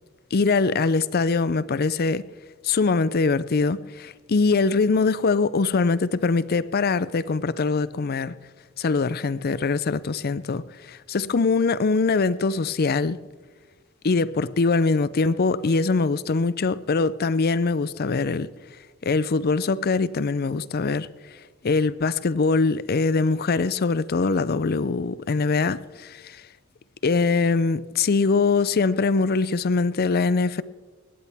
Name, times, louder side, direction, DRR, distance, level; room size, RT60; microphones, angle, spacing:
voice 1, 0.3-2.2 2.6-8.4 8.8-13.2 14.0-18.5 19.0-21.1 21.6-26.4 27.0-30.6, left 4 dB, 50° left, 0.5 m, -23 dB
20.5 x 17.5 x 3.5 m
head